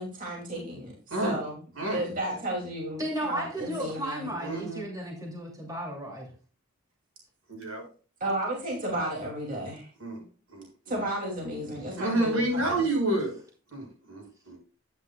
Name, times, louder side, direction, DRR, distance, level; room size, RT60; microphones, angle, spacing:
voice 1, 0.0-0.9 1.2-1.6 1.9-4.3 8.2-10.2 10.9-12.8, right 1 dB, 40° right, -2 dB, 2.6 m, -33 dB
voice 2, 3.0-6.3, right 1 dB, 15° right, -2 dB, 2.7 m, -34 dB
voice 3, 4.4-4.8 7.5-7.8 10.0-10.2 10.5-10.6 12.0-13.4 13.7-14.6, right 2 dB, 85° right, 0 dB, 5.9 m, -29 dB
12.0 x 9.5 x 2.3 m, 0.38 s
head